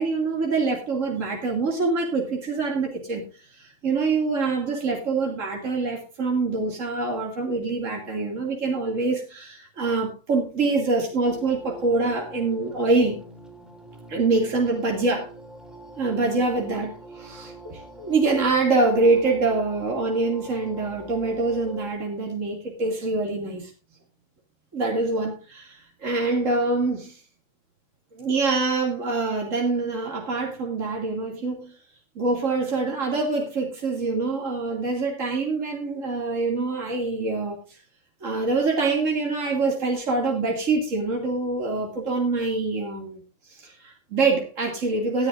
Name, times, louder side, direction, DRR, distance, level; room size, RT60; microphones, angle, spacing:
voice 1, 0.0-3.2 3.5-13.2 14.1-15.3 16.0-23.7 24.7-27.2 28.1-31.7 32.2-37.6 38.2-43.2 43.5-45.3, right 3 dB, 65° right, 0 dB, 2.9 m, -25 dB
sound 1, 11.2-21.9, right 1 dB, ahead, 2.7 m, -44 dB
19.0 x 10.5 x 2.5 m, 0.31 s
omnidirectional pair, 1.5 m